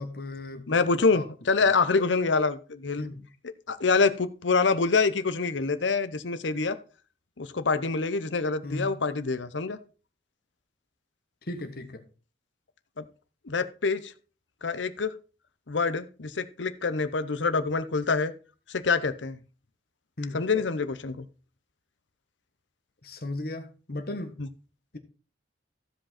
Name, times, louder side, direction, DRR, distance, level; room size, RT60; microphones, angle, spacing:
voice 1, 0.0-0.8 1.1-1.3 1.6-1.7 3.0-3.2 8.6-8.9 11.5-12.0 20.2-20.4 23.0-24.3, left 2 dB, 55° left, 1.3 m, -36 dB
voice 2, 0.7-3.1 3.7-6.8 7.4-9.8 13.0-13.1 13.5-14.1 14.6-15.1 15.7-18.3 18.7-19.4 20.3-21.2 24.4-24.5, left 4 dB, 90° left, 0.8 m, -26 dB
15.0 x 5.2 x 4.2 m
head